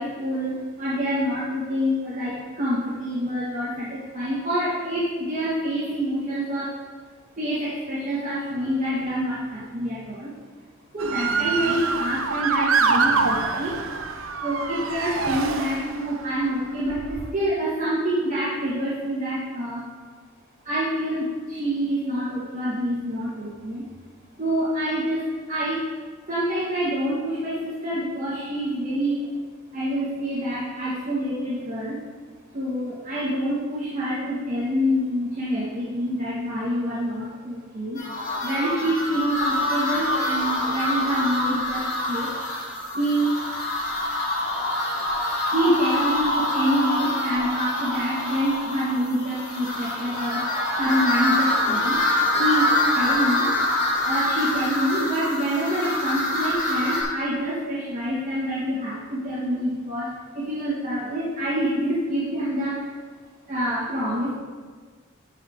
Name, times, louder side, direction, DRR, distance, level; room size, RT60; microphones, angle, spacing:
voice 1, 0.0-6.7 7.4-10.3 10.9-13.8 14.4-19.8 20.6-23.8 24.4-25.2 25.5-25.8 26.3-29.2 29.7-32.0 32.5-38.0 38.4-42.3 42.9-43.3 45.5-50.4 50.8-52.0 52.4-52.7 52.9-53.4 54.0-60.1 60.3-62.8 63.5-64.3, equal, 40° right, -11 dB, 2.2 m, -26 dB
Motor vehicle (road) / Siren, 11.0-16.2 16.9-17.3, right 4 dB, 80° right, 0.7 m, -25 dB
sound 1, 38.0-57.0, left 1 dB, 40° left, 2.8 m, -25 dB
13.0 x 5.7 x 3.2 m, 1.5 s
head